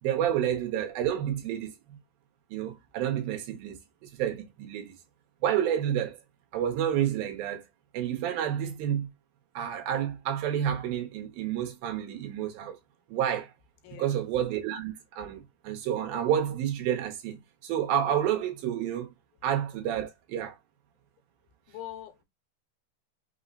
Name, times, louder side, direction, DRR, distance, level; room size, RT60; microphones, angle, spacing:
voice 1, 0.0-2.0 2.5-4.9 5.4-6.2 6.5-7.6 7.9-9.1 9.6-12.8 13.1-13.5 13.9-19.1 19.4-20.6, right 10 dB, 80° right, 2.5 m, -30 dB
voice 2, 13.8-14.2 21.7-22.2, left 12 dB, 85° left, 2.4 m, -42 dB
5.8 x 2.1 x 3.8 m
omnidirectional pair, 4.2 m